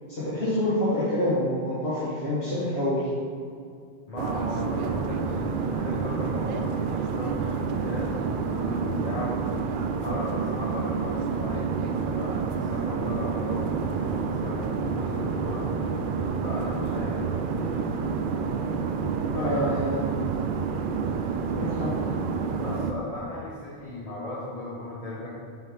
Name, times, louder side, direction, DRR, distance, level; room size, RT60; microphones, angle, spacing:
voice 1, 0.1-3.1 17.6-17.8 19.3-20.0 21.5-22.0, left 1 dB, 75° left, -10 dB, 2.1 m, -27 dB
voice 2, 4.1-9.4 10.0-15.7 16.4-17.5 19.3-19.7 22.6-25.3, left 1 dB, 35° left, -8 dB, 1.4 m, -36 dB
sound 1, 4.2-22.9, right 5 dB, 60° right, 0.6 m, -28 dB
7.2 x 3.7 x 6.3 m, 2.3 s
omnidirectional pair, 1.0 m